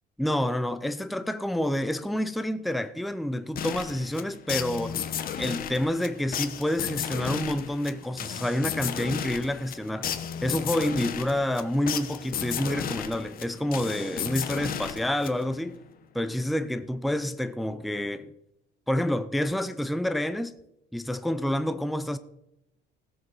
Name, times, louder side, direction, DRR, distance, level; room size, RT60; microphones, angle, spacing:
voice 1, 0.2-5.0 5.4-10.1 10.4-15.8 16.1-18.3 18.9-20.5 20.9-22.2, left 1 dB, ahead, 0.5 m, -28 dB
sound 1, 3.6-15.7, left 9 dB, 45° left, 1.1 m, -34 dB
16.0 x 7.7 x 6.1 m
cardioid pair, 145°, 20 cm